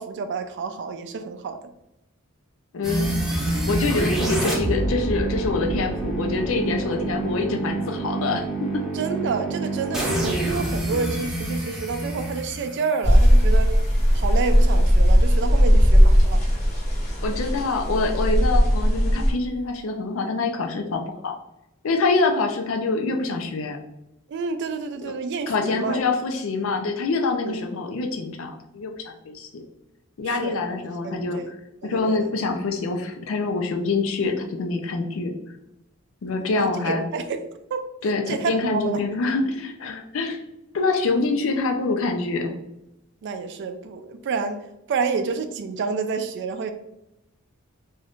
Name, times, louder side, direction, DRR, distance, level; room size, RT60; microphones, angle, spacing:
voice 1, 0.0-1.6 8.9-13.7 14.1-16.4 24.3-26.0 27.4-27.6 30.2-30.8 31.0-31.4 31.8-32.3 36.5-37.8 38.3-39.0 43.2-46.7, right 5 dB, 55° right, 8 dB, 0.3 m, -29 dB
voice 2, 2.7-3.1 3.7-8.5 8.7-8.8 17.2-21.3 21.8-23.8 25.0-25.1 25.5-29.6 30.2-31.4 31.8-35.3 36.2-37.0 38.0-40.4 40.7-42.6, left 3 dB, 70° left, 4 dB, 0.5 m, -25 dB
sound 1, 2.8-13.8, right 2 dB, ahead, 0.7 m, -27 dB
sound 2, 13.0-19.3, equal, 35° left, 0.8 m, -17 dB
2.6 x 2.3 x 3.4 m, 0.88 s
head